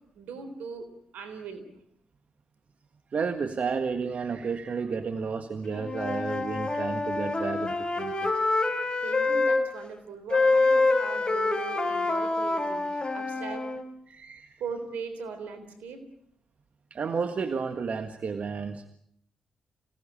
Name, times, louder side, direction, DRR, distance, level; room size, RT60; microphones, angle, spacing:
voice 1, 0.1-0.9 1.1-1.6 9.0-13.7 14.6-16.0, right 5 dB, 85° right, 10 dB, 3.8 m, -39 dB
voice 2, 3.1-8.3 14.1-14.6 16.9-18.9, right 5 dB, 60° right, 9 dB, 1.7 m, -32 dB
Wind instrument woodwind instrument, 5.7-9.6 10.3-13.8, left 3 dB, 35° left, 4.5 m, -26 dB
26.0 x 18.0 x 8.8 m, 0.68 s
supercardioid pair, 45°, 3 cm